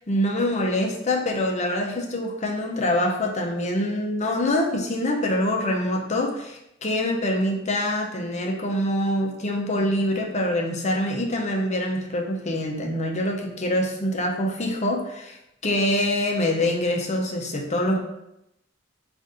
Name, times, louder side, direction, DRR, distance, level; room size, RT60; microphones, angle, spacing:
voice 1, 0.0-15.4 15.6-18.0, left 1 dB, 35° left, 1 dB, 0.6 m, -25 dB
3.9 x 2.5 x 3.7 m, 0.84 s
head